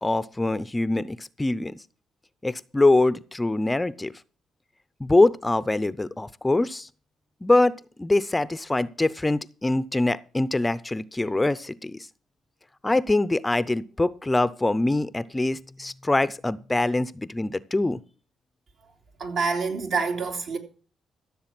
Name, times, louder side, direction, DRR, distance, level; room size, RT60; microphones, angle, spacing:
voice 1, 0.0-1.7 2.4-4.1 5.0-6.9 7.4-12.1 12.8-18.0, left 2 dB, 15° left, 0.6 m, -24 dB
voice 2, 19.2-20.6, right 4 dB, 70° right, 3.0 m, -27 dB
14.5 x 7.2 x 6.0 m
cardioid pair, 90°, 0 cm